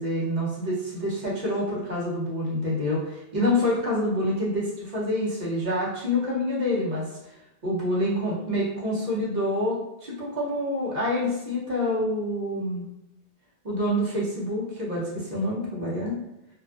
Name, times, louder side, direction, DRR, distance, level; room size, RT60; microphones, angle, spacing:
voice 1, 0.0-7.4 7.6-12.8 13.6-16.2, left 1 dB, 45° right, -6 dB, 0.8 m, -27 dB
2.4 x 2.3 x 2.4 m, 0.87 s
omnidirectional pair, 1.2 m